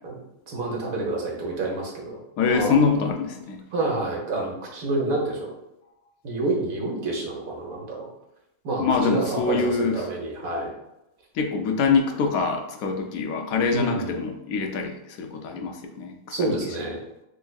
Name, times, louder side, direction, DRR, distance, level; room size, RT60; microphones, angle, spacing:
voice 1, 0.5-2.8 3.7-5.5 6.2-8.1 8.6-10.7 13.7-14.2 16.3-17.0, right 2 dB, 85° right, -1 dB, 1.3 m, -28 dB
voice 2, 2.4-3.6 8.8-10.0 11.3-16.5, left 5 dB, 85° left, 4 dB, 1.0 m, -24 dB
3.6 x 3.2 x 2.2 m, 0.87 s
omnidirectional pair, 1.4 m